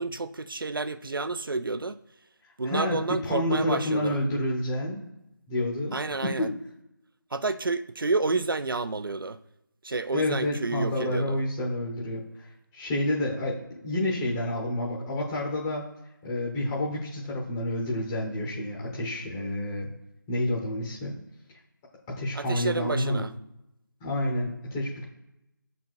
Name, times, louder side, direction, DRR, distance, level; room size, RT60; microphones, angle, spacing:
voice 1, 0.0-2.0 2.6-4.2 5.9-6.5 7.3-9.4 9.8-11.4 22.3-23.3, right 3 dB, 80° right, 13 dB, 0.6 m, -30 dB
voice 2, 2.4-5.1 5.5-6.5 10.1-15.9 16.2-19.9 20.3-21.2 22.1-23.2 24.0-25.0, left 1 dB, 10° left, -3 dB, 0.7 m, -29 dB
7.1 x 4.0 x 4.7 m, 0.89 s
figure-of-eight pair, 165°, 11 cm